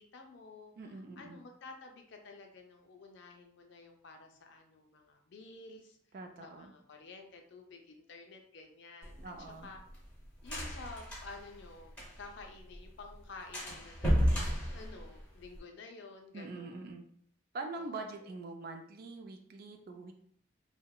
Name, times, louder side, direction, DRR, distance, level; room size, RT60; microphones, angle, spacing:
voice 1, 0.0-0.7 1.2-6.0 6.4-9.3 9.6-9.8 10.4-14.3 14.7-16.9 17.7-18.1, left 3 dB, 55° left, 3 dB, 0.4 m, -51 dB
voice 2, 0.8-1.4 6.1-6.7 9.2-9.7 16.3-17.0 17.5-20.1, right 3 dB, 45° right, 4 dB, 0.3 m, -44 dB
sound 1, 9.0-12.4 12.7-12.8 13.1-13.2 13.5-15.6, equal, 5° left, 0.7 m, -33 dB
2.8 x 2.1 x 2.2 m, 0.62 s
head